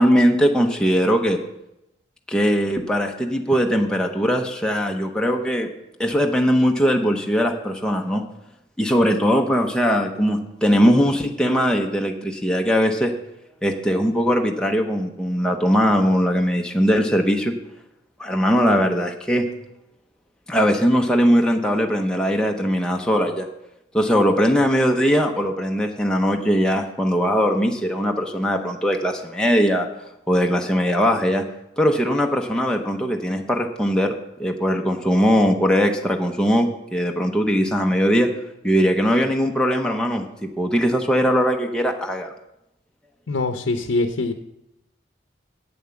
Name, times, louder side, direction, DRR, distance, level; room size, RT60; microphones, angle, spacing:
voice 1, 0.0-1.4 2.3-5.7 6.0-8.2 8.8-13.1 13.6-17.5 18.2-19.5 20.5-23.5 23.9-29.9 30.3-31.4 31.8-34.1 34.4-38.3 38.6-40.3 40.6-42.3, equal, 5° left, 1 dB, 0.7 m, -20 dB
voice 2, 43.3-44.3, left 3 dB, 85° left, 6 dB, 0.7 m, -23 dB
8.6 x 7.2 x 7.1 m, 0.87 s
head